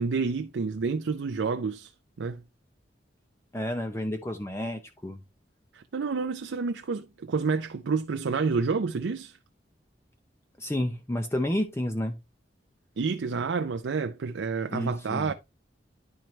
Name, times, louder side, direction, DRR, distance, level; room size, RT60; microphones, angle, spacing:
voice 1, 0.0-1.9 2.2-2.4 5.7-9.4 13.0-15.3, right 4 dB, 85° right, 0.5 m, -29 dB
voice 2, 3.5-5.2 10.6-12.2 14.7-15.3, left 1 dB, 15° left, 0.6 m, -30 dB
10.5 x 4.5 x 3.1 m
head